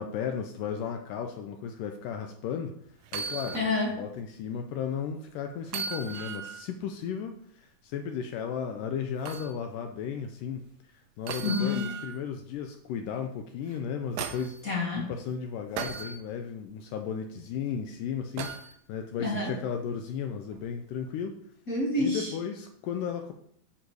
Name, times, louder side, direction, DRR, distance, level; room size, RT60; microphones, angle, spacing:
voice 1, 0.0-2.8 3.1-3.6 3.9-10.7 11.2-14.6 15.0-21.4 22.0-23.3, left 7 dB, 80° left, 6 dB, 2.0 m, -35 dB
sound 1, 3.0-3.7 4.2-4.3 5.7-6.7 9.3-9.5 11.3-12.2 13.7-14.6 15.8-16.2 18.4-18.7 20.5-20.7, right 6 dB, 75° right, 2.2 m, -37 dB
voice 2, 3.5-4.0 11.4-11.9 14.6-15.1 19.2-19.6 21.7-22.3, left 2 dB, 35° left, -2 dB, 1.4 m, -28 dB
10.0 x 6.1 x 4.7 m, 0.67 s
omnidirectional pair, 4.4 m